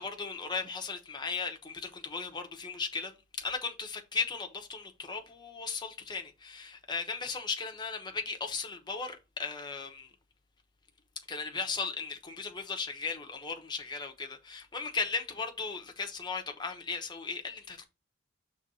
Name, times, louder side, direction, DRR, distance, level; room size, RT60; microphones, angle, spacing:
voice 1, 0.0-10.1 11.3-17.8, left 5 dB, 20° left, 1.1 m, -36 dB
6.3 x 3.6 x 5.4 m
head